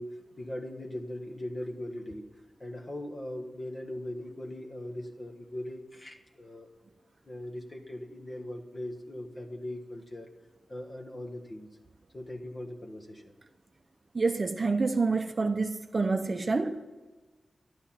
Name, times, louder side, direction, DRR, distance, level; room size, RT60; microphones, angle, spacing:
voice 1, 0.0-2.3 2.6-6.7 7.2-10.3 10.7-11.8 12.1-13.3, left 1 dB, 30° left, 1.5 m, -40 dB
voice 2, 14.1-16.8, right 3 dB, 35° right, 0.7 m, -28 dB
12.5 x 12.0 x 5.9 m
wide cardioid pair, 130°, 0 cm